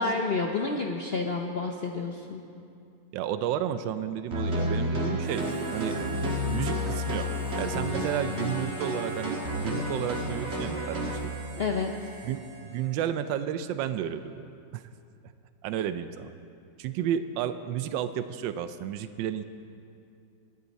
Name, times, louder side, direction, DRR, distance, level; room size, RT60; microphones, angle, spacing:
voice 1, 0.0-2.4 11.6-11.9, left 4 dB, 75° left, 2 dB, 0.5 m, -29 dB
voice 2, 3.1-6.0 6.5-7.3 7.6-11.3 12.2-14.5 14.7-14.8 15.6-16.3 16.8-19.4, right 10 dB, 85° right, 11 dB, 1.3 m, -32 dB
sound 1, 4.3-11.2, equal, 40° right, 1.9 m, -30 dB
Harmonica, 5.2-13.2, right 2 dB, 55° right, 3.0 m, -46 dB
22.5 x 9.7 x 4.1 m, 2.5 s
omnidirectional pair, 2.0 m